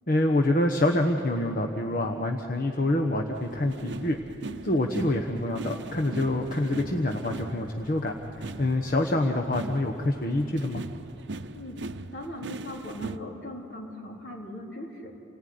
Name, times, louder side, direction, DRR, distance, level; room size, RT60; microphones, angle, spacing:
voice 1, 0.1-4.2 4.6-8.1 8.6-10.8, left 1 dB, 45° left, 2 dB, 1.2 m, -26 dB
sound 1, 3.3-13.2, right 2 dB, 60° right, 0.7 m, -40 dB
voice 2, 12.1-15.2, left 1 dB, 65° left, 0 dB, 3.7 m, -39 dB
28.0 x 18.5 x 9.5 m, 2.9 s
head